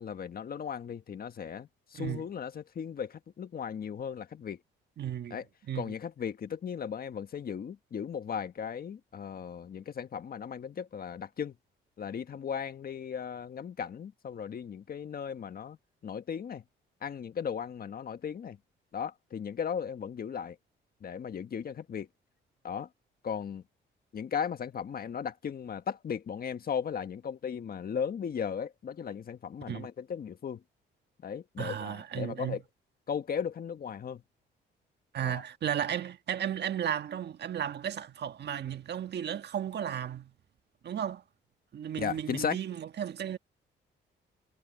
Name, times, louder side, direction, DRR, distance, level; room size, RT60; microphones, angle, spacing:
voice 1, 0.0-4.6 5.3-5.4 5.7-11.5 12.0-15.8 16.0-16.6 17.0-18.6 18.9-20.6 21.0-22.1 22.6-22.9 23.2-23.6 24.1-30.6 31.2-32.6 33.1-34.2 35.2-35.4 42.0-42.6, left 7 dB, 50° left, 1.6 m, -36 dB
voice 2, 1.9-2.2 5.0-5.4 5.7-5.9 29.7-29.9 31.6-32.6 35.1-40.3 40.8-41.2 41.7-43.4, right 9 dB, 60° right, 1.5 m, -34 dB
cardioid pair, 90°, 20 cm